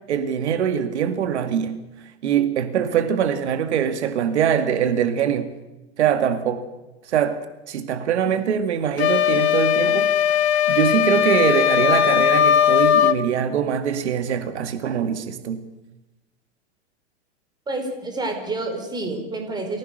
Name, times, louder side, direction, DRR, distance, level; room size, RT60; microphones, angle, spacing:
voice 1, 0.1-1.8 2.2-5.5 6.0-6.6 7.1-7.4 7.7-10.1 10.7-15.6, right 8 dB, 85° right, 10 dB, 2.2 m, -23 dB
sound 1, 9.0-13.2, left 10 dB, 80° left, 1.8 m, -18 dB
voice 2, 17.7-19.8, right 2 dB, 10° right, 4 dB, 4.9 m, -28 dB
28.0 x 16.5 x 6.6 m, 1.1 s
supercardioid pair, 140°, 33 cm